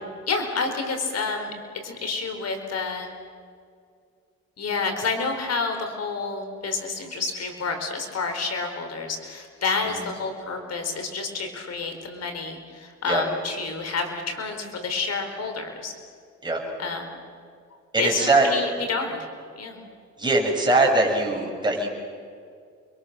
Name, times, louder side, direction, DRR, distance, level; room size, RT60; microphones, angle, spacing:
voice 1, 0.3-1.5 1.8-3.1 4.6-15.9 16.8-17.1 18.0-19.2 19.6-19.8, left 4 dB, 55° left, 5 dB, 4.5 m, -29 dB
voice 2, 17.9-18.5 20.2-21.9, right 2 dB, 15° right, -1 dB, 6.8 m, -21 dB
29.5 x 22.5 x 6.8 m, 2.3 s
cardioid pair, 90°, 30 cm